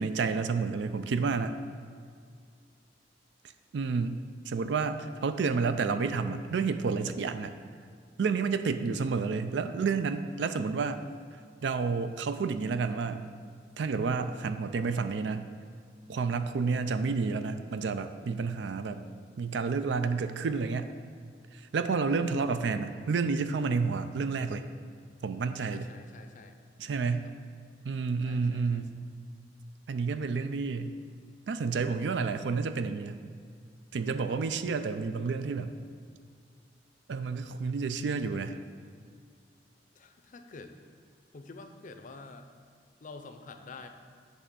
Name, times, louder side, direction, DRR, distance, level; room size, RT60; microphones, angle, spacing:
voice 1, 0.0-1.6 3.7-4.2 4.5-7.5 8.2-11.0 11.6-13.3 13.8-15.5 16.1-19.0 19.4-20.9 21.5-24.7 25.2-25.9 26.8-27.3 27.8-28.8 29.9-31.0 31.5-33.2 33.9-35.7 37.1-38.6, right 4 dB, 80° right, 10 dB, 0.4 m, -30 dB
voice 2, 25.6-26.6 27.1-27.3 28.3-28.8 40.0-40.7 41.3-42.5 43.0-43.9, left 3 dB, 50° left, 7 dB, 0.5 m, -48 dB
8.1 x 3.3 x 6.2 m, 2.1 s
head